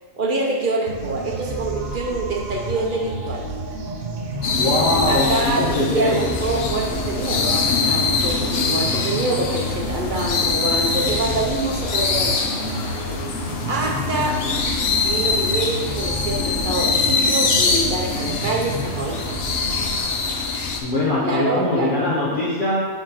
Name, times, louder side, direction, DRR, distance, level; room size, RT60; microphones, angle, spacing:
voice 1, 0.2-3.4 5.1-12.7 13.7-14.4 15.0-19.3 21.2-21.9, right 2 dB, 50° right, -1 dB, 0.7 m, -25 dB
sound 1, 0.9-20.0, right 2 dB, 80° right, 1.4 m, -31 dB
sound 2, 4.4-20.8, left 4 dB, 55° left, 0.8 m, -23 dB
voice 2, 4.5-6.3 20.8-22.8, left 1 dB, 40° left, -8 dB, 1.1 m, -21 dB
sound 3, 8.0-13.3, left 3 dB, 80° left, 1.1 m, -41 dB
4.9 x 3.7 x 5.7 m, 1.5 s
omnidirectional pair, 1.4 m